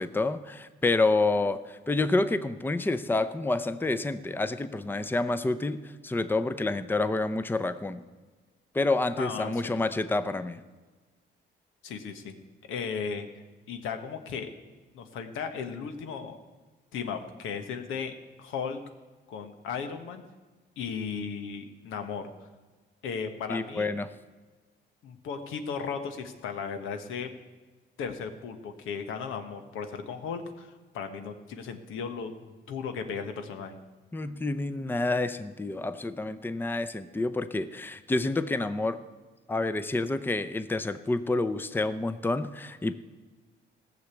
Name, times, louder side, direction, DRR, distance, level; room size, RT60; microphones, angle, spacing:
voice 1, 0.0-8.0 8.7-10.6 23.5-24.1 34.1-39.0 39.5-42.9, left 2 dB, 10° left, 12 dB, 0.6 m, -28 dB
voice 2, 9.2-9.8 11.8-12.3 12.7-13.3 13.7-14.5 14.9-16.4 16.9-18.1 18.4-18.8 19.3-20.2 20.8-22.2 23.0-23.9 25.0-27.3 28.0-33.8, left 6 dB, 90° left, 7 dB, 1.3 m, -36 dB
15.0 x 6.6 x 8.3 m, 1.3 s
cardioid pair, 90°, 20 cm